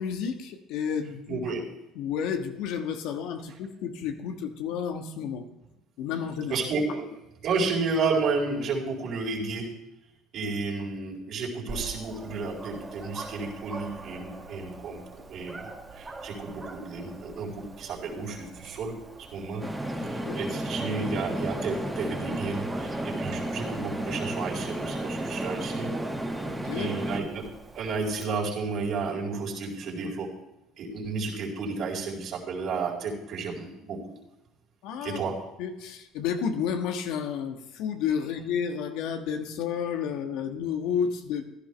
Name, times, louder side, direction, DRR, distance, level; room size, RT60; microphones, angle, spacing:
voice 1, 0.0-1.4 1.9-5.4 6.0-6.6 10.4-10.5 20.0-20.4 21.0-21.1 26.4-27.0 34.8-35.2 35.6-41.4, left 7 dB, 75° left, 5 dB, 1.4 m, -31 dB
voice 2, 1.3-1.6 6.5-7.0 7.4-9.7 10.3-15.0 15.3-15.7 15.9-18.9 19.3-19.6 20.0-25.9 26.8-27.4 27.7-30.3 30.8-34.2 35.0-35.4, right 4 dB, 60° right, -2 dB, 4.6 m, -31 dB
Dog, 11.7-28.2, right 3 dB, 25° right, 2.1 m, -44 dB
sound 1, 19.6-27.2, right 1 dB, 5° right, 1.9 m, -33 dB
15.5 x 12.0 x 3.4 m, 0.94 s
supercardioid pair, 80°, 0 cm